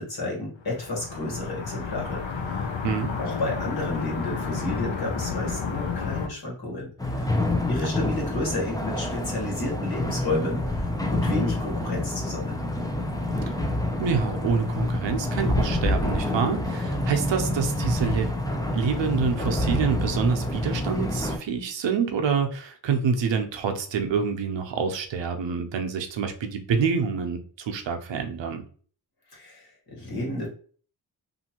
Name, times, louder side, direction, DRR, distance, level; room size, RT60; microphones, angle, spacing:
voice 1, 0.0-2.7 3.2-7.3 7.7-12.6 29.3-30.5, left 2 dB, 50° left, -3 dB, 1.4 m, -31 dB
sound 1, 0.6-6.3, left 5 dB, 75° left, 0.7 m, -31 dB
sound 2, 7.0-21.4, left 1 dB, 10° left, 0.4 m, -27 dB
voice 2, 14.0-18.3 18.7-28.6, right 6 dB, 70° right, 5 dB, 0.7 m, -27 dB
2.6 x 2.6 x 2.8 m, 0.44 s
cardioid pair, 80°, 46 cm